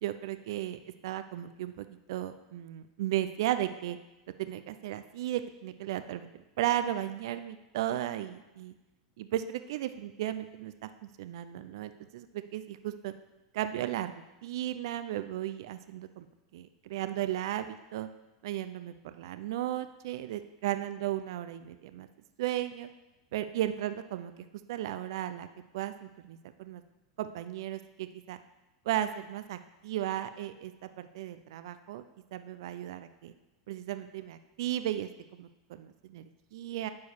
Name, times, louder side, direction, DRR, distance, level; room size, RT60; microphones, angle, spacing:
voice 1, 0.0-4.0 4.4-8.7 9.2-10.9 11.2-13.1 13.5-16.3 16.5-18.1 18.4-22.1 22.4-22.9 23.3-24.3 24.7-25.5 25.7-26.8 27.2-28.4 28.9-30.7 31.0-32.0 32.3-33.3 33.7-36.9, right 12 dB, 70° right, 11 dB, 0.5 m, -35 dB
9.5 x 4.7 x 7.1 m, 1.0 s
hypercardioid pair, 110°, 2 cm